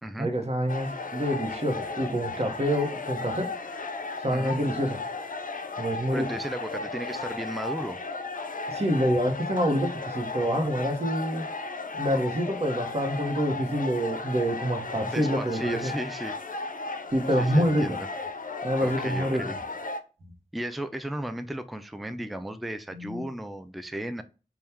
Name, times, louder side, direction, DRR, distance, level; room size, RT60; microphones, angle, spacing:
voice 1, 0.2-3.5 4.2-5.0 5.8-6.3 8.7-11.5 11.9-15.9 17.1-18.0 18.6-19.5 22.9-23.2, equal, 45° right, 4 dB, 0.9 m, -27 dB
sound 1, 0.7-20.0, left 3 dB, 70° left, 0.5 m, -35 dB
voice 2, 6.1-8.0 15.0-16.4 16.7-16.9 17.4-18.1 18.8-19.6 20.5-24.2, right 1 dB, ahead, 10 dB, 0.3 m, -35 dB
4.3 x 2.3 x 3.4 m, 0.34 s
wide cardioid pair, 65°, 15 cm